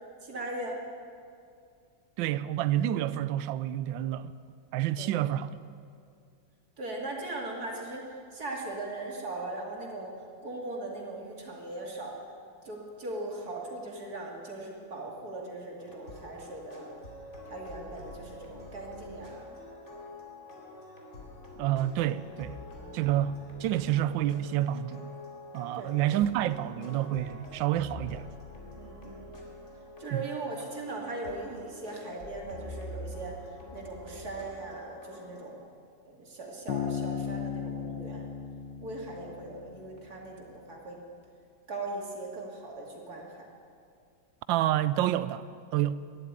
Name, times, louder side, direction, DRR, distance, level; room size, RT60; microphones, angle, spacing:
voice 1, 0.2-0.8 5.0-5.2 6.8-10.1 10.4-12.1 12.6-16.9 17.5-19.5 22.7-22.9 25.7-26.1 28.8-29.4 30.0-33.3 33.7-35.6 36.1-38.3 38.8-41.0 41.7-43.4, right 2 dB, 50° right, 2.9 m, -39 dB
voice 2, 2.2-4.3 4.7-5.5 21.6-22.5 22.9-25.0 25.5-28.3 30.1-30.2 44.5-45.9, right 12 dB, 80° right, 1.3 m, -28 dB
sound 1, 15.8-35.5, left 1 dB, 35° left, 2.7 m, -46 dB
Bass guitar, 36.7-40.2, left 8 dB, 85° left, 1.6 m, -36 dB
13.0 x 11.0 x 9.5 m
omnidirectional pair, 2.1 m